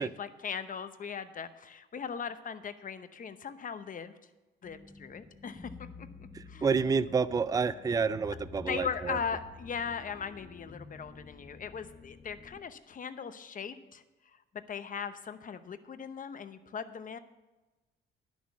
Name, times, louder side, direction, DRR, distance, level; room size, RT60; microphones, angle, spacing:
voice 1, 0.0-4.1 4.6-6.1 6.5-6.7 8.6-14.0 14.5-17.2, left 6 dB, 45° left, 11 dB, 0.8 m, -39 dB
sound 1, 4.6-12.6, left 4 dB, 20° left, 1.1 m, -50 dB
voice 2, 6.3-9.2, right 5 dB, 20° right, 15 dB, 0.4 m, -29 dB
11.0 x 6.3 x 7.2 m, 1.1 s
cardioid pair, 90°, 20 cm